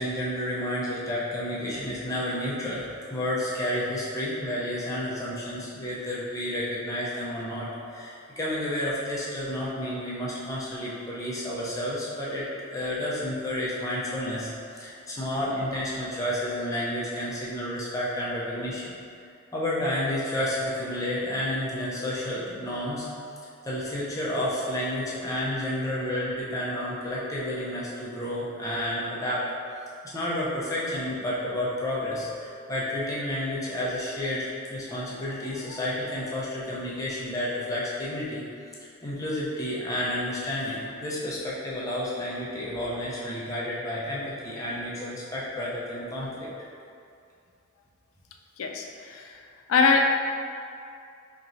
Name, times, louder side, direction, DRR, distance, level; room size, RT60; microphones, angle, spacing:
voice 1, 0.0-2.8 3.1-14.5 14.8-18.8 19.5-23.1 23.6-29.5 30.1-38.4 39.0-46.5, left 1 dB, 15° left, -7 dB, 0.6 m, -30 dB
voice 2, 48.6-49.4 49.7-50.0, left 4 dB, 85° left, 2 dB, 0.4 m, -23 dB
4.5 x 2.9 x 2.6 m, 2.4 s
head